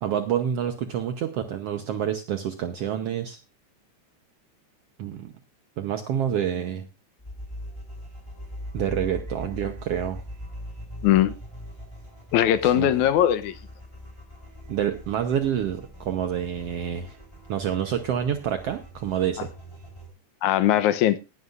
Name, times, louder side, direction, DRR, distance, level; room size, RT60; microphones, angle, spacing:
voice 1, 0.0-3.4 5.0-5.3 5.8-6.9 8.7-10.2 12.6-12.9 14.7-17.2 17.5-19.5, right 9 dB, 65° right, 1.7 m, -28 dB
sound 1, 7.2-20.1, equal, 10° left, 3.5 m, -41 dB
voice 2, 11.0-11.3 12.3-13.5 20.4-21.2, left 11 dB, 85° left, 2.2 m, -20 dB
19.0 x 11.0 x 2.5 m
omnidirectional pair, 3.4 m